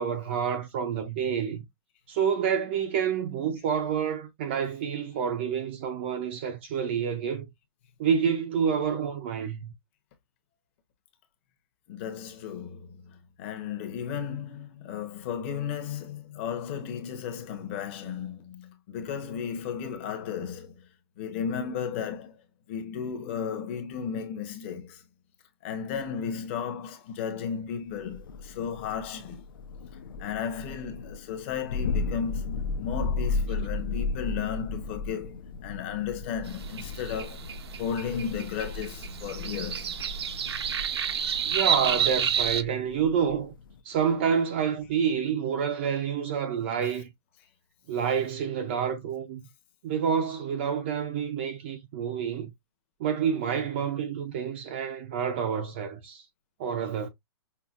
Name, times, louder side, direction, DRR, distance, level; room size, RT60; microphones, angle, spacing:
voice 1, 0.0-1.6 2.1-7.5 8.0-9.7 41.4-43.5 43.8-47.1 47.9-49.4 49.8-52.5 53.0-56.2 56.6-57.1, right 7 dB, 25° right, 0.4 m, -28 dB
voice 2, 11.9-12.9 13.4-20.7 21.2-22.4 22.7-25.0 25.6-29.4 30.2-37.4 37.8-39.9, left 7 dB, 30° left, 0.8 m, -34 dB
Thunder, 28.0-43.8, left 4 dB, 55° left, 0.4 m, -35 dB
sound 1, 36.4-42.6, right 8 dB, 85° right, 0.8 m, -30 dB
5.6 x 2.1 x 2.4 m
hypercardioid pair, 175°, 13 cm